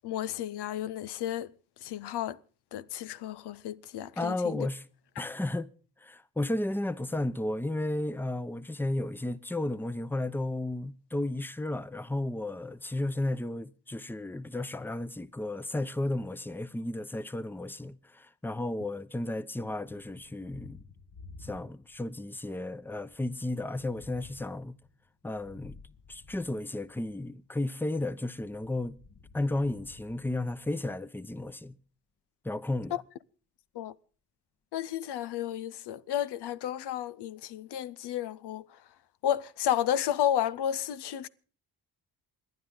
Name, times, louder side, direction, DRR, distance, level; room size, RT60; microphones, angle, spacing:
voice 1, 0.0-1.5 1.8-2.4 2.7-4.7 32.9-33.0 33.7-33.9 34.7-38.8 39.2-41.3, left 11 dB, 90° left, 0.6 m, -32 dB
voice 2, 4.2-4.8 5.2-5.7 6.0-20.8 21.4-24.8 25.2-25.8 26.1-29.0 29.3-31.8 32.4-33.0, left 2 dB, 5° left, 0.7 m, -33 dB
Thunder, 19.8-22.1 22.4-27.2 28.3-30.9, left 4 dB, 50° left, 1.4 m, -54 dB
28.0 x 10.5 x 3.8 m
cardioid pair, 60°, 39 cm